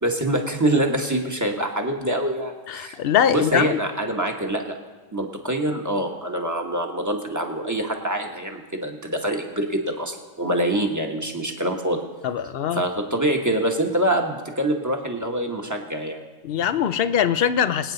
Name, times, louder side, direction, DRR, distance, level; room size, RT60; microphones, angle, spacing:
voice 1, 0.0-3.0 3.3-4.8 5.1-12.0 12.7-16.2, right 1 dB, 15° right, 2 dB, 1.3 m, -25 dB
voice 2, 2.7-3.8 12.2-12.8 16.4-17.9, left 9 dB, 60° left, 13 dB, 0.6 m, -22 dB
25.0 x 9.1 x 4.0 m, 1.3 s
omnidirectional pair, 1.3 m